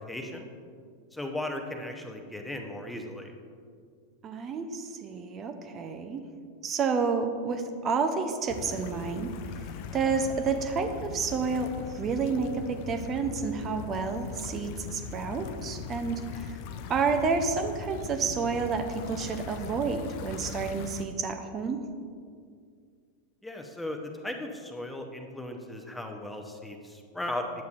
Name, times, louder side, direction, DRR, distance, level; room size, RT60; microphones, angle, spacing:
voice 1, 0.1-0.5 1.1-3.3 23.4-27.4, left 1 dB, 5° left, 3 dB, 0.8 m, -37 dB
voice 2, 4.2-6.2 6.6-16.6 16.9-21.8, right 5 dB, 25° right, 7 dB, 0.6 m, -30 dB
sound 1, 8.5-21.1, left 7 dB, 45° left, 0.4 m, -40 dB
10.5 x 8.1 x 2.5 m, 2.2 s
figure-of-eight pair, 90°, 0 cm